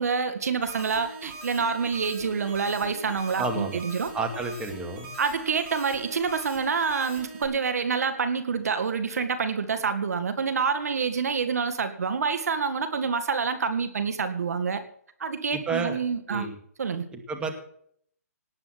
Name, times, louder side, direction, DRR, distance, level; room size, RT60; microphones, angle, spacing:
voice 1, 0.0-4.1 5.2-14.8 15.2-16.5 16.8-17.1, right 5 dB, 70° right, 10 dB, 2.0 m, -27 dB
sound 1, 0.6-7.4, right 2 dB, 40° right, 7.0 m, -42 dB
voice 2, 3.4-3.8 4.1-5.1 15.5-16.0 16.3-16.6 17.1-17.5, right 3 dB, 10° right, 3 dB, 2.3 m, -30 dB
18.0 x 9.1 x 6.1 m, 0.63 s
hypercardioid pair, 140°, 9 cm